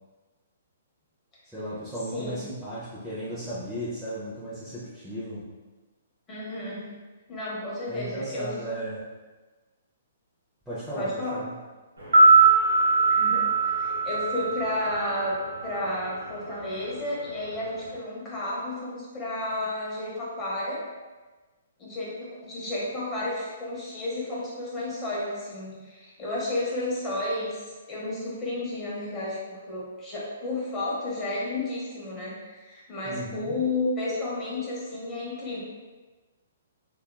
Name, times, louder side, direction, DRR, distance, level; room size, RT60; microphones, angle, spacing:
voice 1, 1.5-5.5 7.9-9.1 10.7-11.5 33.1-33.6, right 1 dB, 5° right, -12 dB, 0.6 m, -35 dB
voice 2, 2.1-2.5 6.3-6.9 7.3-8.8 10.9-11.4 13.1-20.8 21.8-27.6 27.9-35.6, left 2 dB, 20° left, -7 dB, 1.0 m, -32 dB
sound 1, 12.0-16.2 16.4-16.5, right 3 dB, 85° right, 0.8 m, -21 dB
2.8 x 2.3 x 2.2 m, 1.3 s
hypercardioid pair, 130°, 0 cm